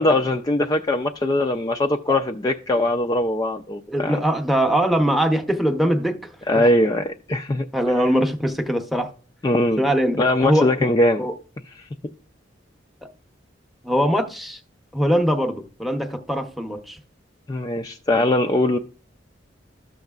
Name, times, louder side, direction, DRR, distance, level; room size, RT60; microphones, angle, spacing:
voice 1, 0.0-4.2 6.5-7.6 9.4-9.8 10.2-11.3 11.8-11.9 17.5-18.8, left 1 dB, 20° left, 0.3 m, -21 dB
voice 2, 3.9-6.3 7.7-9.1 9.8-10.7 11.2-11.3 13.8-14.6 14.9-17.0, equal, ahead, 0.7 m, -22 dB
13.0 x 6.4 x 2.3 m
head